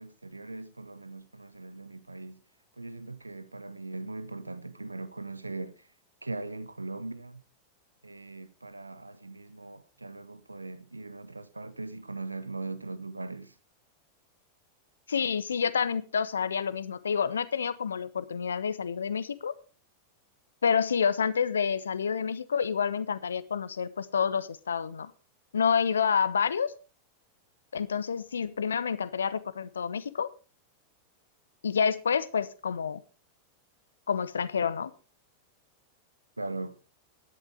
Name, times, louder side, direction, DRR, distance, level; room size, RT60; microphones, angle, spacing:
voice 1, 0.0-2.4 2.8-5.9 6.2-7.4 8.0-13.6 36.4-36.8, right 2 dB, 80° right, 0.7 m, -40 dB
voice 2, 15.1-19.5 20.6-25.1 25.5-26.7 27.7-30.3 31.6-33.0 34.1-34.9, left 6 dB, 70° left, 0.9 m, -28 dB
12.0 x 10.5 x 5.0 m
figure-of-eight pair, 90°, 0 cm